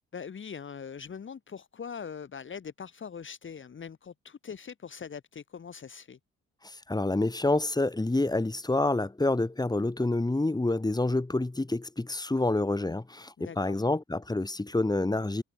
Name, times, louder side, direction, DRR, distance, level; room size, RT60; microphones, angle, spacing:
voice 1, 0.1-6.2 13.4-13.8, left 6 dB, 40° left, 2.3 m, -42 dB
voice 2, 6.6-15.4, left 2 dB, 15° left, 3.8 m, -28 dB
cardioid pair, 90°, 30 cm